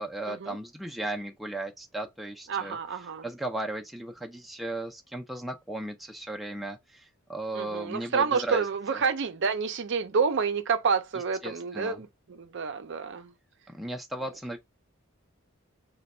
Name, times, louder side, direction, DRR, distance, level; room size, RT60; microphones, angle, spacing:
voice 1, 0.0-2.8 3.2-8.6 11.4-12.0 13.7-14.6, right 1 dB, ahead, 0.4 m, -36 dB
voice 2, 2.5-3.3 7.5-13.3, right 5 dB, 55° right, 0.5 m, -29 dB
3.3 x 2.2 x 4.1 m
head